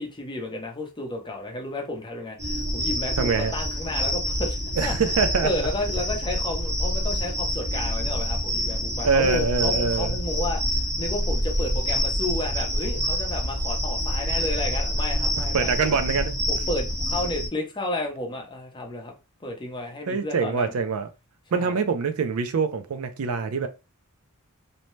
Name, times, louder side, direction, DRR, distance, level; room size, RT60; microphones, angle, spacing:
voice 1, 0.0-4.6 4.8-5.1 5.4-16.0 16.5-19.1 19.4-20.7 21.5-21.8, left 2 dB, 20° left, 0.7 m, -32 dB
sound 1, 2.4-17.5, equal, 30° right, 0.8 m, -27 dB
voice 2, 3.2-3.5 4.8-5.5 9.0-10.1 15.5-16.3 20.1-21.1 21.5-23.7, right 5 dB, 65° right, 0.4 m, -24 dB
2.7 x 2.1 x 3.1 m
head